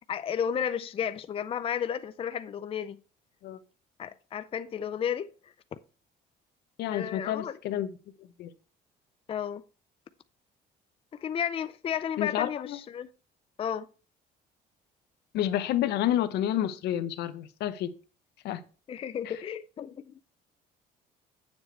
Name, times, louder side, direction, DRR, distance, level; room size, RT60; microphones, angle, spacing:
voice 1, 0.1-3.0 4.0-5.5 6.9-7.6 9.3-9.6 11.2-13.1 13.6-13.9 18.9-20.1, left 8 dB, 35° left, 0.4 m, -33 dB
voice 2, 6.8-7.9 8.4-8.5 12.2-12.8 15.3-17.9 18.4-18.6, left 11 dB, 75° left, 0.8 m, -29 dB
8.9 x 7.2 x 3.2 m
cardioid pair, 110°, 17 cm